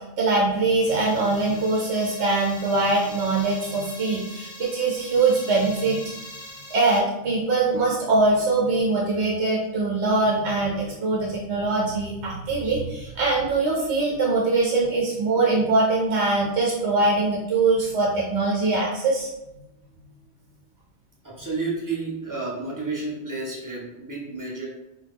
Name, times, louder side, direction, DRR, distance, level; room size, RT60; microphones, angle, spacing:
voice 1, 0.2-6.0 6.7-19.3, right 3 dB, 80° right, -4 dB, 0.9 m, -22 dB
sound 1, 0.9-7.0, left 1 dB, 25° left, 0.6 m, -42 dB
voice 2, 21.2-24.7, right 3 dB, 20° right, -4 dB, 0.6 m, -31 dB
2.8 x 2.3 x 3.4 m, 0.94 s
omnidirectional pair, 1.1 m